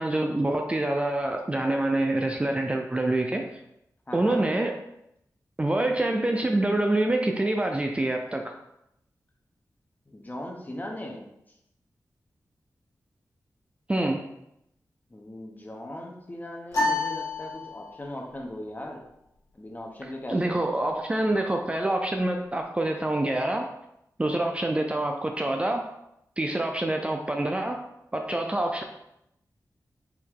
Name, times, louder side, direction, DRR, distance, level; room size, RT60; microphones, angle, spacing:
voice 1, 0.0-3.5 4.1-4.8 5.6-8.5 13.9-14.2 20.3-23.7 24.2-25.9 26.4-27.9 28.1-28.8, right 1 dB, 20° right, 3 dB, 0.4 m, -26 dB
voice 2, 4.1-4.5 10.1-11.3 15.1-19.0 19.5-20.6, left 1 dB, 25° left, 1 dB, 0.8 m, -38 dB
sound 1, 16.7-18.2, left 2 dB, 50° left, 1.5 m, -29 dB
4.6 x 3.0 x 3.7 m, 0.82 s
wide cardioid pair, 95°, 7 cm